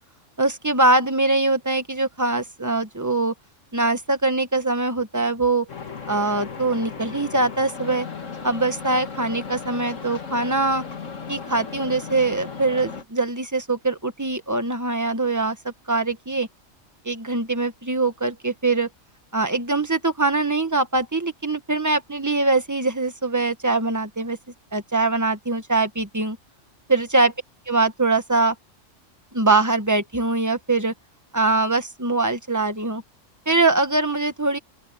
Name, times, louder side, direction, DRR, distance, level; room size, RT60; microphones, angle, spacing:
voice 1, 0.4-3.3 3.7-5.7 6.1-8.1 8.4-10.8 11.3-16.5 17.0-18.9 19.3-24.4 24.7-26.4 26.9-27.3 27.7-28.5 29.3-30.9 31.3-33.0 33.4-34.6, right 3 dB, 15° right, 1.5 m, -22 dB
sound 1, 5.7-13.0, left 5 dB, 75° left, 2.2 m, -36 dB
open air
omnidirectional pair, 1.3 m